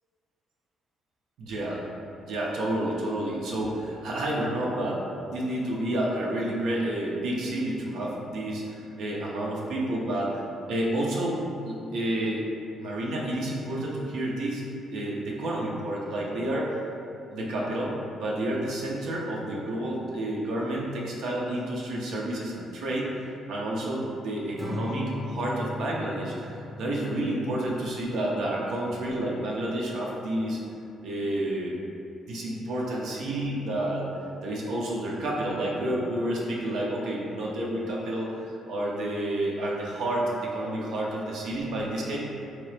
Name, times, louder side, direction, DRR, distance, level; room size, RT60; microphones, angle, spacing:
voice 1, 1.4-1.8 2.2-10.4 10.7-12.5 12.8-14.6 14.9-16.8 17.3-30.6 31.0-31.8 32.3-34.1 34.4-42.2, right 1 dB, 75° right, -3 dB, 0.6 m, -30 dB
Acoustic guitar / Strum, 24.6-27.9, left 1 dB, 5° right, 0.6 m, -37 dB
3.6 x 2.9 x 3.2 m, 2.7 s
cardioid pair, 125°, 0 cm